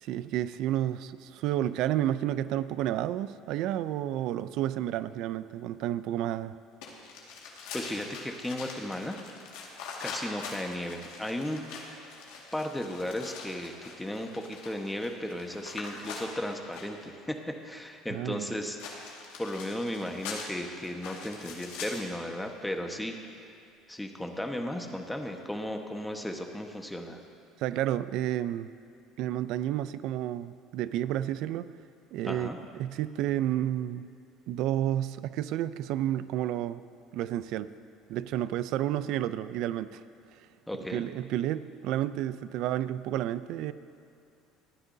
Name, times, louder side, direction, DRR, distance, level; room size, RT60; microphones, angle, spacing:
voice 1, 0.0-6.5 18.1-18.5 27.6-28.7 29.2-31.7 32.1-34.0 34.5-36.8 37.1-37.7 38.1-40.0 40.9-43.7, right 12 dB, 70° right, 14 dB, 0.5 m, -31 dB
sound 1, 6.8-17.0 18.8-22.2, left 4 dB, 80° left, 2.0 m, -43 dB
voice 2, 7.7-9.2 10.0-11.6 12.5-17.4 17.6-18.8 19.4-23.2 23.9-27.2 32.2-32.6 40.7-41.0, left 1 dB, 5° left, 3 dB, 1.3 m, -35 dB
28.0 x 9.7 x 2.8 m, 2.6 s
supercardioid pair, 95°, 0 cm